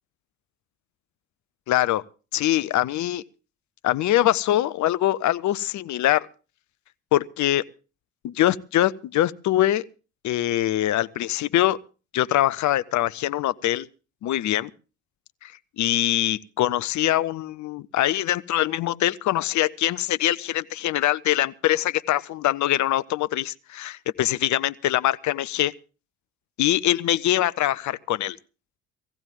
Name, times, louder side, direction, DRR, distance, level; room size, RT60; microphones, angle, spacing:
voice 1, 1.7-2.0 2.3-3.2 3.8-6.3 7.1-7.6 8.2-9.8 10.2-11.8 12.1-13.9 14.2-14.7 15.4-15.5 15.8-25.7 26.6-28.4, left 13 dB, 50° left, 0.7 m, -23 dB
19.0 x 15.0 x 3.7 m
hypercardioid pair, 55°, 36 cm